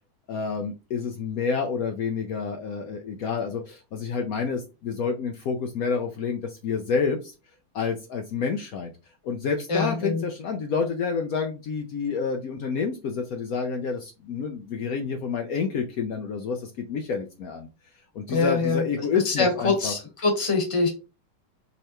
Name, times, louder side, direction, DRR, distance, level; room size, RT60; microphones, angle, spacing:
voice 1, 0.3-7.3 7.7-8.9 9.2-17.7 18.1-19.9, left 5 dB, 80° left, 3 dB, 0.7 m, -29 dB
voice 2, 9.7-10.2 18.3-18.8 19.2-20.9, left 3 dB, 20° left, 2 dB, 0.9 m, -24 dB
5.4 x 3.3 x 2.9 m, 0.30 s
omnidirectional pair, 2.2 m